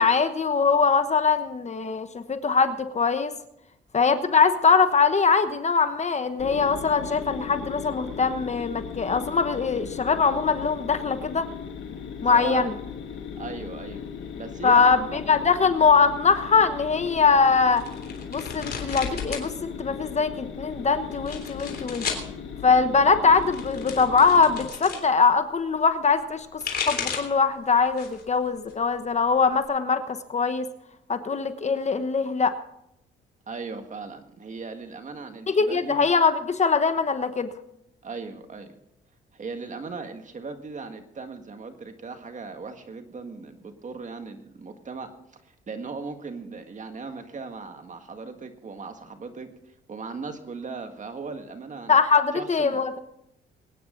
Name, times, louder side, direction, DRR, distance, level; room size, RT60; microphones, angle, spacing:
voice 1, 0.0-3.3 3.9-11.5 12.2-12.7 14.6-17.8 18.3-22.1 22.6-30.7 31.1-32.6 35.5-37.5 51.9-53.0, left 5 dB, 35° left, 10 dB, 1.1 m, -22 dB
sound 1, 6.4-24.7, left 7 dB, 75° left, 2.4 m, -37 dB
voice 2, 12.3-12.7 13.4-14.0 14.4-15.2 33.5-36.1 38.0-38.8 39.3-52.0 52.3-52.8, right 4 dB, 40° right, 7 dB, 1.8 m, -38 dB
sound 2, 17.7-19.5 19.8-20.4 21.1-22.3 23.3-25.0 26.3-27.4 27.9-28.3 28.7-29.7, left 6 dB, 55° left, 3.4 m, -34 dB
22.5 x 9.5 x 3.9 m, 0.78 s
cardioid pair, 90°, 20 cm